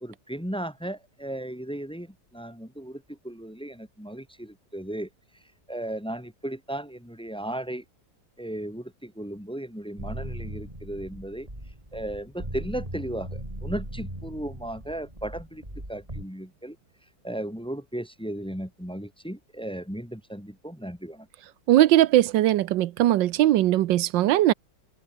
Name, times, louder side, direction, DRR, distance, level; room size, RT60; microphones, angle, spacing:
voice 1, 0.0-5.1 5.7-7.8 8.4-11.5 11.9-15.6 15.9-16.8 17.2-21.3, right 1 dB, 5° left, 2.0 m, -35 dB
sound 1, 10.0-16.2, right 1 dB, 20° right, 7.7 m, -38 dB
voice 2, 21.7-24.5, right 14 dB, 80° right, 1.4 m, -20 dB
omnidirectional pair, 2.0 m